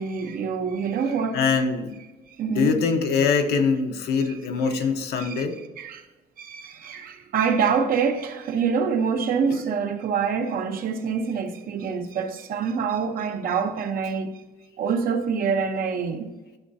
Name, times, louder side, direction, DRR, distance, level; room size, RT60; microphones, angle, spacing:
voice 1, 0.0-1.4 2.4-2.8 5.2-5.4 5.8-6.0 6.4-14.4 14.8-16.3, right 6 dB, 60° right, 0.9 m, -26 dB
voice 2, 1.3-1.9 2.5-5.6 9.5-9.6, left 5 dB, 75° left, 1.0 m, -23 dB
12.0 x 5.7 x 2.7 m
cardioid pair, 110°, 17 cm